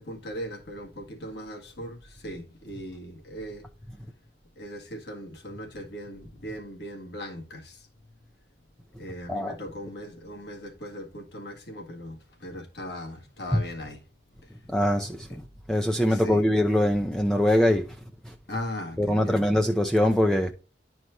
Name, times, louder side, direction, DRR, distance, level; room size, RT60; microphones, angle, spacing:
voice 1, 0.0-3.7 4.6-7.9 9.0-14.0 15.3-15.4 16.0-16.5 18.5-19.5, equal, 70° left, 1.9 m, -39 dB
voice 2, 14.7-15.4 15.7-17.8 19.0-20.5, left 1 dB, 5° left, 0.5 m, -23 dB
11.0 x 4.6 x 2.6 m
head